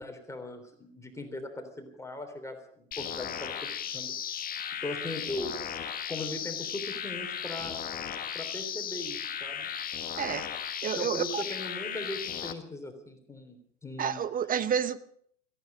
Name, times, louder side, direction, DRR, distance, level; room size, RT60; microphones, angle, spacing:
voice 1, 0.0-4.2 4.8-5.5 6.1-7.8 8.3-9.7 11.0-14.2, left 2 dB, 10° left, 4 dB, 3.4 m, -39 dB
sound 1, 2.9-12.5, left 8 dB, 25° left, 1.5 m, -36 dB
voice 2, 10.8-11.4 14.0-15.0, right 8 dB, 25° right, 15 dB, 0.7 m, -29 dB
17.5 x 14.5 x 5.4 m, 0.65 s
hypercardioid pair, 95°, 37 cm